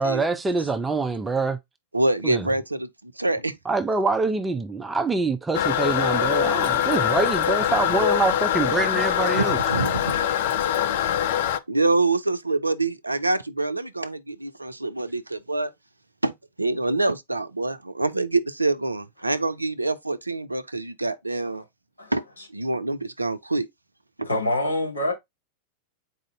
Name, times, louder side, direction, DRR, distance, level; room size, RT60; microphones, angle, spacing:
voice 1, 0.0-1.6 2.2-2.5 3.7-9.6, right 3 dB, 10° right, 0.5 m, -25 dB
voice 2, 1.9-3.5 9.3-10.2 11.7-15.7 16.2-16.3 16.6-21.6 22.1-22.2 22.5-23.7 24.2-24.3, right 2 dB, 85° right, 0.5 m, -25 dB
Toilet flush, 5.5-11.6, left 10 dB, 55° left, 0.4 m, -23 dB
voice 3, 24.2-25.1, left 1 dB, 80° left, 2.3 m, -25 dB
4.2 x 2.6 x 3.8 m
figure-of-eight pair, 90°, 0 cm